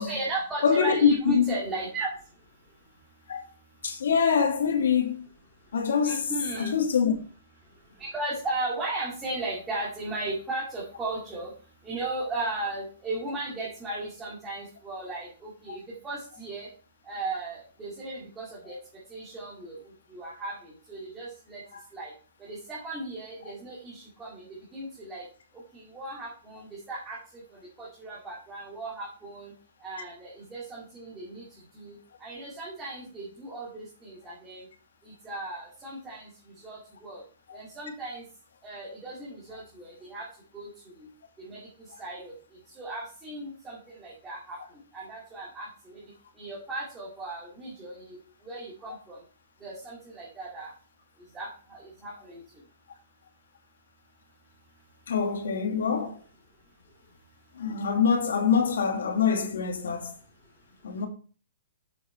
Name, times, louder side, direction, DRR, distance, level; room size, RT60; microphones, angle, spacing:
voice 1, 0.0-2.1 6.0-6.7 8.0-11.5 11.8-16.7 17.1-18.8 19.1-19.8 20.1-20.6 20.9-21.6 21.9-22.1 22.4-24.5 24.7-25.2 25.7-27.2 27.8-29.5 29.8-31.5 31.7-34.6 35.2-36.3 36.6-37.2 37.5-38.2 38.6-40.3 40.5-40.7 41.4-41.6 42.0-42.3 42.8-44.6 44.9-45.9 46.4-48.2 48.5-49.2 49.6-50.7 51.3-52.4, right 2 dB, 10° right, 2.3 m, -36 dB
voice 2, 0.6-1.5 3.3-3.4 3.8-5.3 5.7-6.3 6.6-7.1 15.7-15.8 18.6-18.7 21.7-21.8 23.4-23.5 37.5-37.6 55.1-56.2 57.6-60.1 60.8-61.1, left 6 dB, 85° left, 2.4 m, -25 dB
9.1 x 7.1 x 4.4 m
hypercardioid pair, 180°, 0 cm